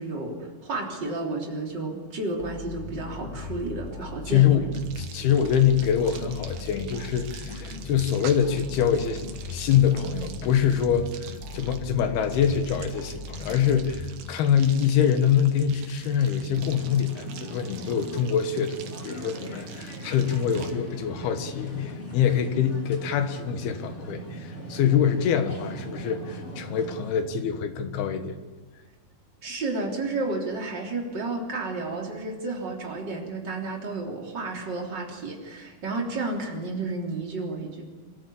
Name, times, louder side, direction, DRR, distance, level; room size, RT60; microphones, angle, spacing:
voice 1, 0.0-4.6 29.4-37.8, right 3 dB, 30° right, -1 dB, 3.8 m, -32 dB
sound 1, 2.4-14.7, left 3 dB, 40° left, 2.5 m, -38 dB
voice 2, 4.3-4.7 5.0-9.2 9.5-18.8 19.0-28.4, left 8 dB, 90° left, 8 dB, 3.5 m, -24 dB
sound 2, 4.7-20.7, right 7 dB, 60° right, 2.6 m, -45 dB
sound 3, 16.6-27.2, right 1 dB, 20° left, 3.0 m, -40 dB
25.5 x 14.0 x 8.6 m, 1.3 s
omnidirectional pair, 4.3 m